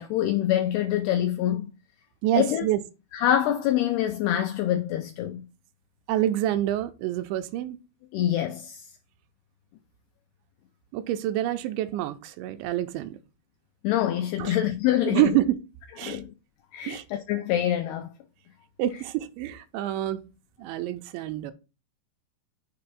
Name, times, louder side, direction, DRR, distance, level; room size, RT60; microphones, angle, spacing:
voice 1, 0.0-1.7 2.4-2.7 3.1-5.4 8.1-8.9 13.8-15.3 16.0-16.3 16.7-18.1, left 12 dB, 85° left, 2.2 m, -25 dB
voice 2, 2.2-2.8 6.1-7.8 10.9-13.2 14.4-14.6 15.0-15.6 16.0-16.2 16.9-17.0 18.8-20.2 20.6-21.5, right 13 dB, 85° right, 2.9 m, -27 dB
6.9 x 3.2 x 5.9 m
omnidirectional pair, 5.1 m